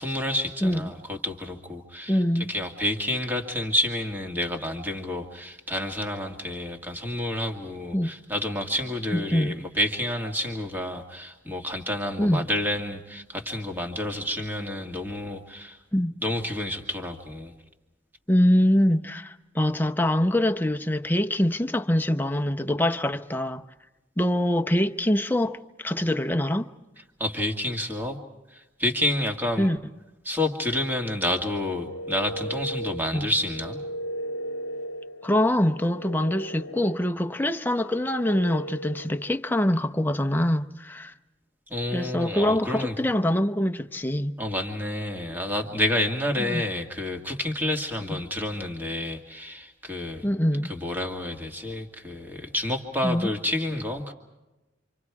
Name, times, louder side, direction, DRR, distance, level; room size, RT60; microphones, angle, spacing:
voice 1, 0.0-2.2 2.5-15.8 16.2-17.6 27.2-28.2 28.5-29.7 30.2-33.8 41.7-43.0 44.4-50.3 50.6-54.1, left 1 dB, 10° right, 2.1 m, -29 dB
voice 2, 0.6-0.9 2.1-2.5 7.9-8.1 9.1-9.6 12.2-12.4 15.9-16.1 18.3-23.6 24.2-26.7 29.6-29.8 33.1-33.3 35.2-41.1 41.9-44.3 46.4-46.6 48.1-48.2 50.2-50.7 53.0-53.3, left 1 dB, 10° left, 0.8 m, -24 dB
sound 1, 31.5-39.3, equal, 80° left, 0.7 m, -37 dB
28.0 x 26.0 x 4.8 m
head